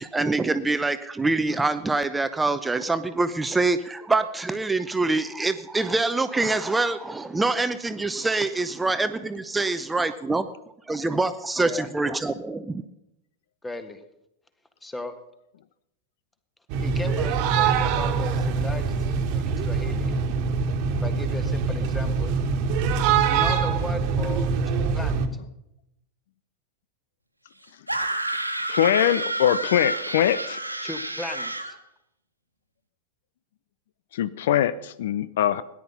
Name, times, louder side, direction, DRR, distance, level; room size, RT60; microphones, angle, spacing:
voice 1, 0.0-10.5 10.9-12.8, right 3 dB, 10° right, 11 dB, 0.8 m, -25 dB
voice 2, 11.6-11.9 13.6-14.0 14.8-15.2 16.8-20.1 21.0-22.4 23.2-25.2 30.8-31.8, left 2 dB, 10° left, 10 dB, 1.6 m, -36 dB
sound 1, 16.7-25.3, right 5 dB, 45° right, 1.5 m, -24 dB
sound 2, 27.9-31.7, right 2 dB, 85° right, 1.5 m, -29 dB
voice 3, 28.7-30.6 34.1-35.6, left 10 dB, 55° left, 17 dB, 0.5 m, -22 dB
18.0 x 11.0 x 5.5 m, 0.85 s
figure-of-eight pair, 90°, 0 cm